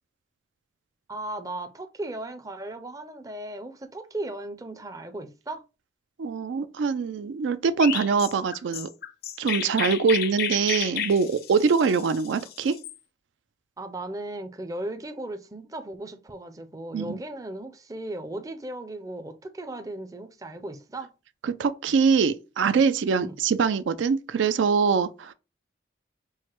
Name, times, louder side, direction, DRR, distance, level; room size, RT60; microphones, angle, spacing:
voice 1, 1.1-5.6 10.1-10.2 13.8-21.1 23.2-23.4, right 1 dB, 20° right, 0.4 m, -36 dB
voice 2, 6.2-8.9 9.4-12.7 16.9-17.2 21.4-25.3, right 5 dB, 80° right, 0.4 m, -23 dB
Chirp tweet, 7.8-12.9, left 9 dB, 50° left, 0.4 m, -32 dB
4.7 x 2.1 x 4.4 m
head